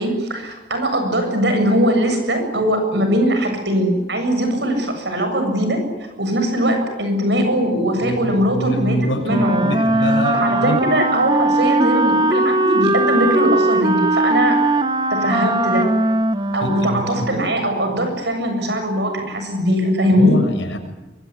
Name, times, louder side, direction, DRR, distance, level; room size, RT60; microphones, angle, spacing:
voice 1, 0.0-5.8 6.2-9.0 9.2-9.7 10.3-14.6 15.1-15.9 16.5-20.4, equal, 70° right, 6 dB, 7.4 m, -20 dB
voice 2, 8.0-10.8 16.6-17.3 20.2-20.8, equal, 90° left, 3 dB, 6.9 m, -25 dB
Wind instrument woodwind instrument, 9.2-17.5, right 2 dB, 25° right, 1.1 m, -19 dB
24.0 x 23.5 x 9.9 m, 1.1 s
head